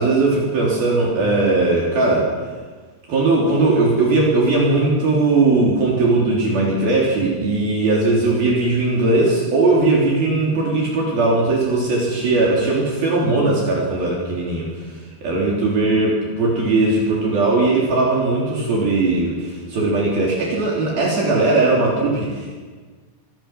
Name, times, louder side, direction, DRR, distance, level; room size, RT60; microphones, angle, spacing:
voice 1, 0.0-2.3 3.1-14.7 14.9-22.6, right 2 dB, 60° right, -4 dB, 5.3 m, -18 dB
25.5 x 20.5 x 6.1 m, 1.5 s
omnidirectional pair, 4.9 m